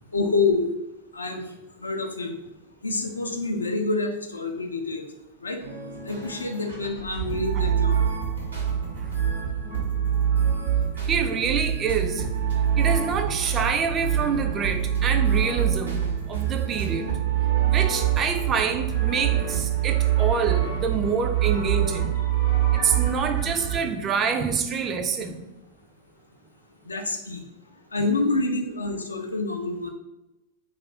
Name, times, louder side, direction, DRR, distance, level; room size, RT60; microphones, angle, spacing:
voice 1, 0.1-0.7 1.1-1.4 1.8-2.4 2.8-5.1 5.4-5.6 6.1-8.1 26.9-27.4 27.9-29.9, left 3 dB, 75° left, 3 dB, 0.4 m, -27 dB
sound 1, 5.6-23.8, right 9 dB, 75° right, 0.9 m, -25 dB
voice 2, 11.0-12.3 12.8-16.0 16.3-17.1 17.7-22.1 22.7-25.4, right 5 dB, 25° right, 6 dB, 0.3 m, -26 dB
2.4 x 2.3 x 3.2 m, 0.96 s
figure-of-eight pair, 90°, 0 cm